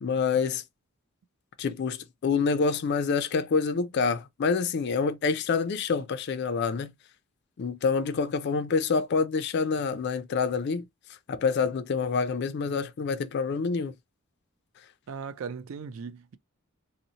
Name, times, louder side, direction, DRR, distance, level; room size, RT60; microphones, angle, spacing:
voice 1, 0.0-0.6 1.6-6.9 7.6-10.9 11.3-13.9, left 5 dB, 50° left, 0.3 m, -27 dB
voice 2, 15.1-16.4, right 5 dB, 65° right, 0.4 m, -38 dB
2.5 x 2.0 x 2.8 m
head